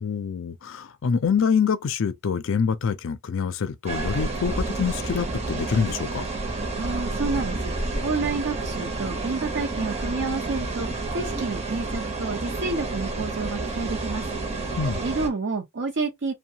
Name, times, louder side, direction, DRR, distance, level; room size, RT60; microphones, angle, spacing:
voice 1, 0.0-6.2 14.8-15.0, left 6 dB, 65° left, 0.4 m, -25 dB
sound 1, 3.9-15.3, right 2 dB, 30° right, 0.7 m, -30 dB
voice 2, 6.8-14.2 14.6-14.8 15.0-16.3, right 3 dB, 60° right, 0.6 m, -29 dB
2.7 x 2.2 x 2.7 m
head